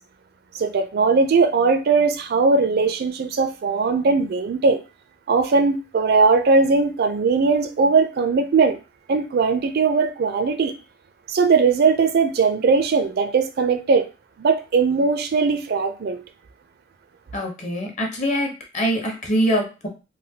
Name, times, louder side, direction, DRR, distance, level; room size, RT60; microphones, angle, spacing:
voice 1, 0.5-4.8 5.3-8.8 9.1-10.7 11.3-14.1 14.4-16.2, right 4 dB, 55° right, 8 dB, 0.4 m, -19 dB
voice 2, 17.3-19.9, equal, 40° left, 1 dB, 0.8 m, -24 dB
3.2 x 2.2 x 2.7 m, 0.30 s
head